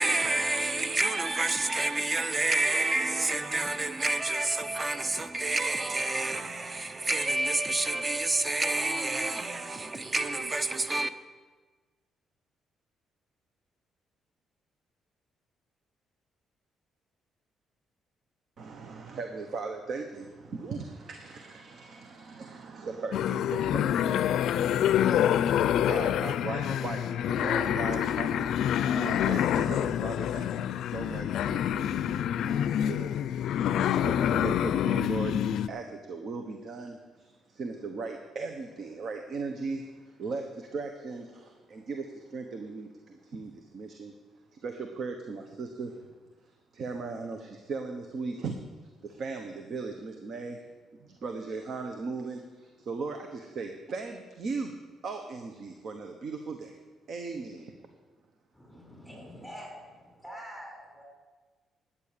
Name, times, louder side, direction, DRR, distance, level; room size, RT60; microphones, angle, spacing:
voice 1, 0.0-11.1, right 2 dB, 25° right, 0.8 m, -28 dB
voice 2, 18.6-32.1 32.4-44.1 44.5-46.1 46.7-48.6 49.0-50.6 51.0-54.8 55.0-56.8 57.1-57.7, right 4 dB, 60° right, 1.1 m, -38 dB
sound 1, 23.1-35.7, left 10 dB, 75° left, 0.4 m, -27 dB
voice 3, 58.5-61.0, equal, ahead, 5.0 m, -45 dB
12.0 x 8.5 x 6.8 m
cardioid pair, 90°, 0 cm